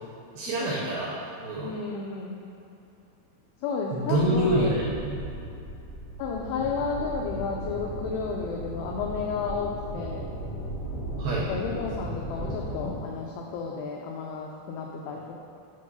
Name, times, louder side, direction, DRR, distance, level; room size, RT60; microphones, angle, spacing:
voice 1, 0.4-1.8 3.9-5.1 11.2-11.5, right 1 dB, 85° right, -5 dB, 2.1 m, -27 dB
voice 2, 1.6-2.5 3.6-4.7 6.2-10.3 11.5-15.4, left 5 dB, 85° left, -1 dB, 2.4 m, -32 dB
sound 1, 4.2-12.9, equal, 65° left, 3.3 m, -36 dB
9.2 x 3.1 x 5.3 m, 2.8 s
omnidirectional pair, 5.3 m